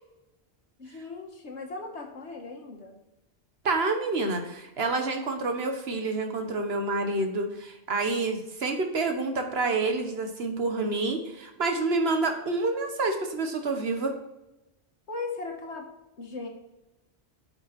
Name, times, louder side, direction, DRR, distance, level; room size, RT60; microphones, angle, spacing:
voice 1, 0.8-3.0 15.1-15.9 16.2-16.5, left 3 dB, 75° left, 2 dB, 1.9 m, -38 dB
voice 2, 3.6-14.1, right 3 dB, 65° right, 5 dB, 1.4 m, -28 dB
8.9 x 5.8 x 4.3 m, 0.93 s
omnidirectional pair, 1.2 m